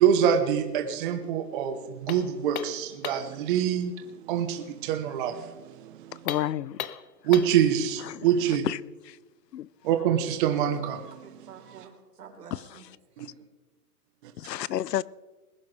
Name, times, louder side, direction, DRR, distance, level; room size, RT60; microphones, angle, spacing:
voice 1, 0.0-6.3 7.2-8.6 9.8-11.1 13.2-13.3 14.2-14.3, right 9 dB, 30° right, 1.1 m, -25 dB
sound 1, 2.1-3.4 6.2-7.6, left 10 dB, 60° left, 0.9 m, -37 dB
voice 2, 6.2-6.8 8.1-8.2 8.6-8.8 9.1-9.2 9.5-9.7 12.5-12.6 14.4-15.0, left 12 dB, 90° left, 0.7 m, -30 dB
voice 3, 11.0-13.5, right 6 dB, 75° right, 4.1 m, -50 dB
21.0 x 10.5 x 3.4 m
hypercardioid pair, 155°, 48 cm